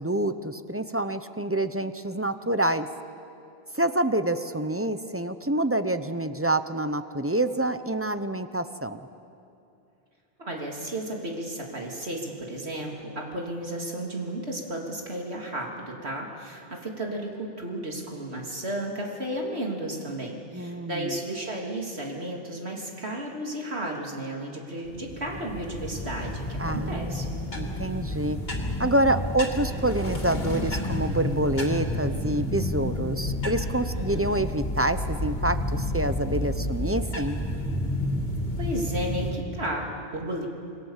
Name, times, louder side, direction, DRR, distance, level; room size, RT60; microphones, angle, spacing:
voice 1, 0.0-2.9 3.7-9.1 20.5-21.2 26.6-28.4 28.8-37.4, right 1 dB, 15° right, 10 dB, 0.7 m, -27 dB
voice 2, 10.4-27.3 33.9-34.4 38.6-40.5, right 1 dB, 80° right, -1 dB, 3.4 m, -33 dB
sound 1, 24.8-39.3, left 1 dB, 65° left, 3.0 m, -30 dB
27.0 x 21.5 x 7.5 m, 2.6 s
omnidirectional pair, 1.1 m